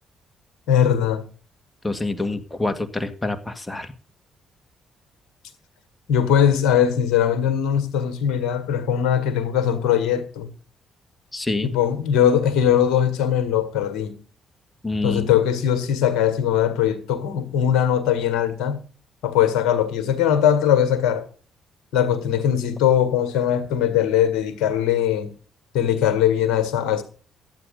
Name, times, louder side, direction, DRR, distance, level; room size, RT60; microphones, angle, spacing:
voice 1, 0.7-1.3 6.1-10.5 11.6-14.2 15.0-18.8 19.2-21.2 21.9-25.3 25.7-27.0, left 9 dB, 75° left, 1.8 m, -20 dB
voice 2, 1.8-3.9 11.3-11.7 14.8-15.3, left 2 dB, 15° left, 2.0 m, -26 dB
12.0 x 8.5 x 5.4 m
hypercardioid pair, 50°, 0 cm